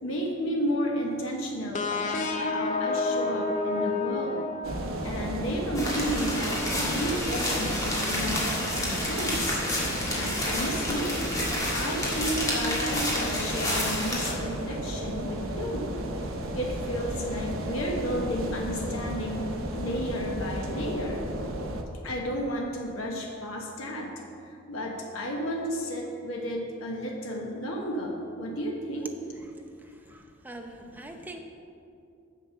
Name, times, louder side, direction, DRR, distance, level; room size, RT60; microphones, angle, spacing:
voice 1, 0.0-4.4 5.0-9.6 10.1-11.2 11.7-15.9 16.3-21.2 22.0-24.1 24.4-29.1 30.9-31.2, equal, 90° left, 0 dB, 1.1 m, -32 dB
sound 1, 1.7-5.3, left 3 dB, 40° left, 0.6 m, -29 dB
sound 2, 4.6-21.8, right 1 dB, 85° right, 0.8 m, -34 dB
sound 3, 5.7-14.3, left 1 dB, 15° left, 1.7 m, -30 dB
voice 2, 29.8-31.4, right 1 dB, 10° right, 3 dB, 0.6 m, -44 dB
7.3 x 7.2 x 5.8 m, 2.6 s
head